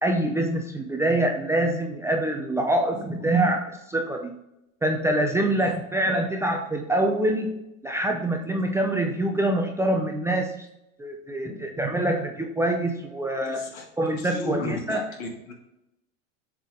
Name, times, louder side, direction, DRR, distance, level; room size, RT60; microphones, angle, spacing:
voice 1, 0.0-4.3 4.8-7.6 7.8-10.7 11.0-13.6 14.0-15.0, right 1 dB, 10° right, 2 dB, 0.3 m, -25 dB
voice 2, 2.9-3.5 5.6-5.7 6.0-6.2 11.4-11.7 13.5-13.9 14.2-15.5, left 3 dB, 80° left, 2 dB, 1.9 m, -35 dB
7.3 x 3.6 x 3.6 m, 0.88 s
hypercardioid pair, 110°, 40 cm